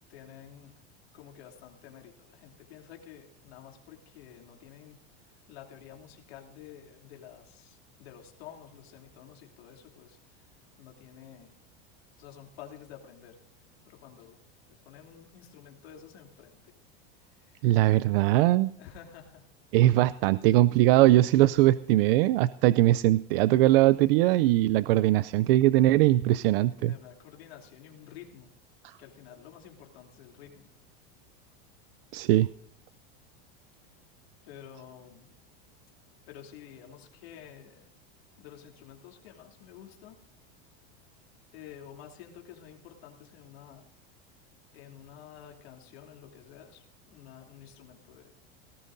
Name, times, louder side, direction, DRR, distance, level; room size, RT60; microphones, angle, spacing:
voice 1, 0.1-0.8 1.1-11.6 12.2-13.4 13.8-14.4 14.7-16.7 17.2-17.8 18.8-19.5 21.4-21.5 26.8-28.6 28.8-30.7 34.4-35.3 36.3-37.9 38.4-40.2 41.5-43.9 44.7-48.3, left 9 dB, 90° left, 2 dB, 2.9 m, -50 dB
voice 2, 17.6-18.7 19.7-26.9 32.1-32.5, right 16 dB, 70° right, 17 dB, 0.5 m, -21 dB
18.5 x 15.0 x 2.6 m, 0.77 s
supercardioid pair, 145°, 30 cm